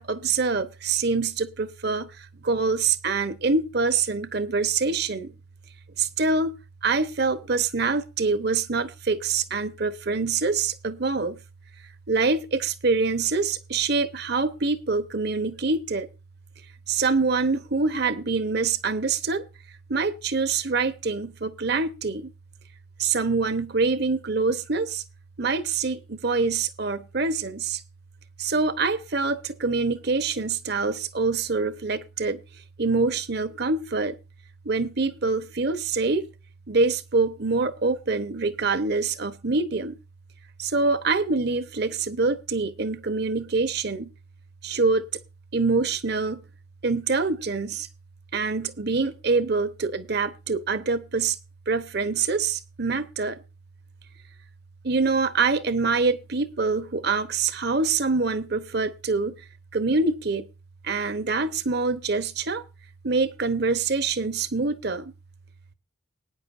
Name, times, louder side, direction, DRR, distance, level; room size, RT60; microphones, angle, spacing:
voice 1, 0.0-2.1 2.4-5.3 6.0-6.5 6.8-11.4 12.1-16.1 16.9-19.5 19.9-22.3 23.0-25.0 25.4-27.8 28.4-32.4 32.8-34.2 34.6-36.2 36.7-39.9 40.6-44.1 44.6-45.1 45.5-46.4 46.8-47.9 48.3-51.4 51.7-53.4 54.8-59.3 59.7-60.5 60.8-62.6 63.0-65.1, right 4 dB, 50° right, 0.9 m, -25 dB
19.0 x 9.7 x 2.6 m
head